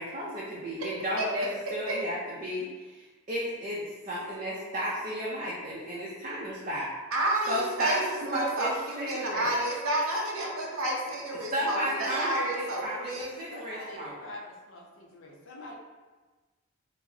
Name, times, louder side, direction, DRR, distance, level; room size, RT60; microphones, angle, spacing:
voice 1, 0.0-3.0 3.3-6.9 7.5-9.5 11.5-14.1, equal, 35° right, -7 dB, 0.5 m, -33 dB
voice 2, 7.1-13.4, right 1 dB, 90° right, -3 dB, 0.7 m, -30 dB
voice 3, 13.5-15.7, left 1 dB, 65° left, -1 dB, 0.6 m, -45 dB
4.8 x 2.0 x 2.6 m, 1.3 s
head